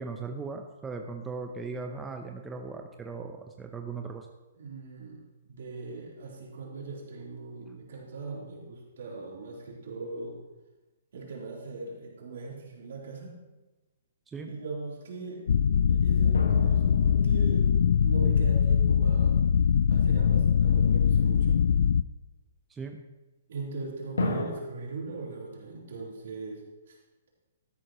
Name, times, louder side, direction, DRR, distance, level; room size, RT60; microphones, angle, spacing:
voice 1, 0.0-4.3 14.3-14.5 22.7-23.0, right 4 dB, 10° right, 3 dB, 0.7 m, -38 dB
voice 2, 4.6-5.2 5.5-10.4 11.1-13.4 14.4-15.4 15.9-17.7 18.0-19.5 19.9-21.6 23.5-27.0, right 3 dB, 70° right, -3 dB, 3.6 m, -40 dB
sound 1, 15.5-22.0, left 7 dB, 70° left, 0.3 m, -22 dB
sound 2, 16.3-19.3 24.2-24.5, left 2 dB, 85° left, 1.7 m, -35 dB
13.0 x 11.0 x 3.1 m, 1.1 s
hypercardioid pair, 145°, 0 cm